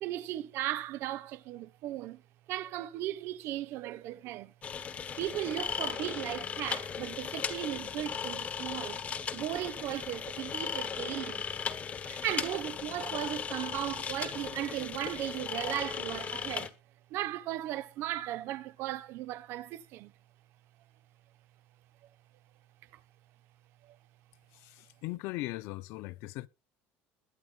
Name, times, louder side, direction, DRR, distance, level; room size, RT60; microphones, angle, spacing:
voice 1, 0.0-2.2 2.5-4.5 5.2-9.0 9.3-11.4 12.0-16.7 17.1-20.1 23.8-24.0, right 14 dB, 60° right, 1.0 m, -36 dB
sound 1, 4.6-16.7, left 7 dB, 30° left, 1.5 m, -37 dB
voice 2, 24.5-26.5, left 19 dB, 70° left, 0.7 m, -39 dB
21.5 x 8.2 x 2.4 m
cardioid pair, 145°, 5 cm